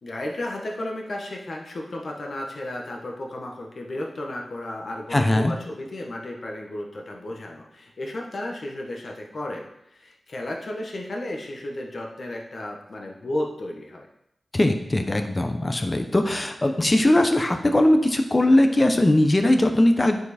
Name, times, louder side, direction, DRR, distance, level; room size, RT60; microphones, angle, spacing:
voice 1, 0.0-14.1, left 1 dB, 60° left, 0 dB, 1.2 m, -33 dB
voice 2, 5.1-5.5 14.5-20.2, left 1 dB, 30° left, 6 dB, 0.8 m, -20 dB
9.7 x 4.6 x 4.3 m, 0.81 s
wide cardioid pair, 85°, 0 cm